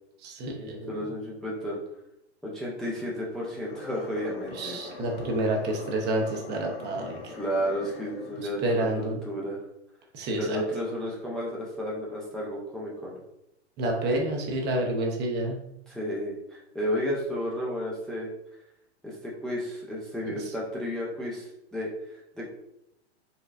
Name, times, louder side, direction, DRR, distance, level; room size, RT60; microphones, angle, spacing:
voice 1, 0.2-1.0 4.5-7.1 8.6-9.2 10.1-10.6 13.8-15.6, right 1 dB, 30° right, 0 dB, 0.7 m, -28 dB
voice 2, 0.9-1.8 2.4-4.8 7.3-9.6 10.3-13.2 15.9-18.3 19.0-22.5, equal, ahead, -6 dB, 0.6 m, -32 dB
sound 1, 3.4-8.7, left 3 dB, 45° left, 0.6 m, -43 dB
4.1 x 2.1 x 2.4 m, 0.81 s
hypercardioid pair, 105°, 34 cm